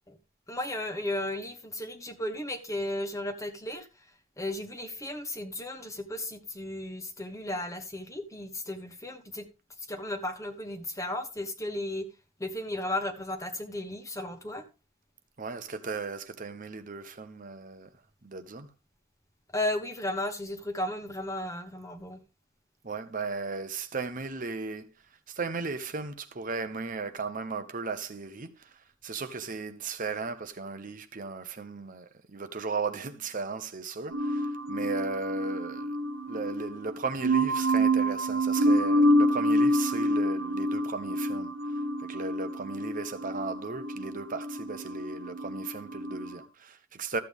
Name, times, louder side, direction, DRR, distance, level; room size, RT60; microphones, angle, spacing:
voice 1, 0.5-3.9 4.4-9.5 9.9-12.1 12.4-14.6 19.5-22.2, left 1 dB, 15° left, 1.3 m, -34 dB
voice 2, 15.4-17.9 18.2-18.7 22.8-36.0 36.3-47.2, right 4 dB, 40° right, 0.9 m, -36 dB
sound 1, 34.1-46.3, equal, 80° right, 1.2 m, -27 dB
13.5 x 8.3 x 3.6 m
head